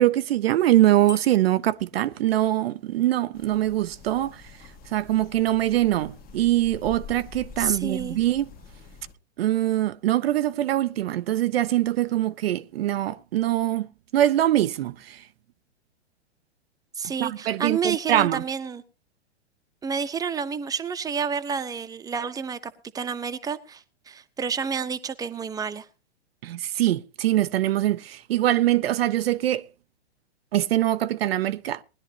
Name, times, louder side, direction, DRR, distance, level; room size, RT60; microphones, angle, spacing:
voice 1, 0.0-4.4 4.9-8.5 9.4-13.9 14.1-15.2 17.2-18.4 26.4-29.7 30.5-31.8, right 13 dB, 60° right, 0.7 m, -23 dB
Bicycle bell, 1.1-1.7, left 4 dB, 10° left, 0.7 m, -41 dB
sound 1, 3.3-9.1, left 5 dB, 25° left, 1.4 m, -46 dB
voice 2, 7.6-8.2 17.0-18.8 19.8-25.9, right 6 dB, 10° right, 0.9 m, -29 dB
20.0 x 11.5 x 2.9 m
hypercardioid pair, 110°, 34 cm